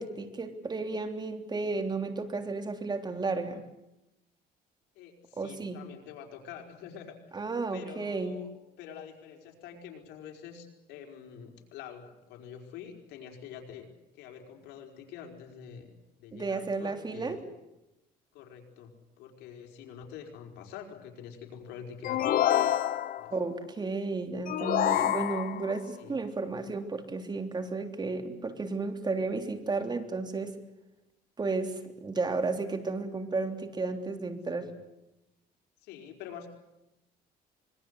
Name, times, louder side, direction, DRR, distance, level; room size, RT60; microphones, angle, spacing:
voice 1, 0.0-3.6 5.4-5.8 7.3-8.4 16.3-17.4 23.3-30.6 31.4-34.7, right 3 dB, 25° right, 6 dB, 3.4 m, -33 dB
voice 2, 4.9-7.2 7.7-8.5 8.8-13.9 14.1-17.5 18.3-22.5 23.1-23.3 25.9-26.2 34.6-34.8 35.8-36.5, left 8 dB, 90° left, 3 dB, 4.9 m, -46 dB
sound 1, 22.0-23.4 24.5-25.8, left 11 dB, 60° left, 1.2 m, -27 dB
26.0 x 22.5 x 8.3 m, 0.91 s
cardioid pair, 110°, 17 cm